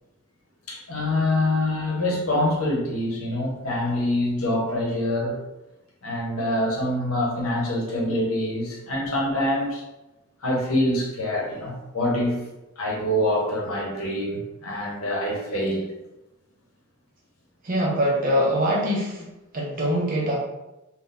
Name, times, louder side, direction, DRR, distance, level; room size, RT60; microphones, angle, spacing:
voice 1, 0.7-5.4 6.0-9.8 10.4-12.4 12.8-15.9, left 1 dB, 75° left, -1 dB, 0.8 m, -25 dB
voice 2, 17.6-19.3 19.5-20.4, equal, 40° right, -3 dB, 0.6 m, -23 dB
2.6 x 2.2 x 3.8 m, 0.98 s
head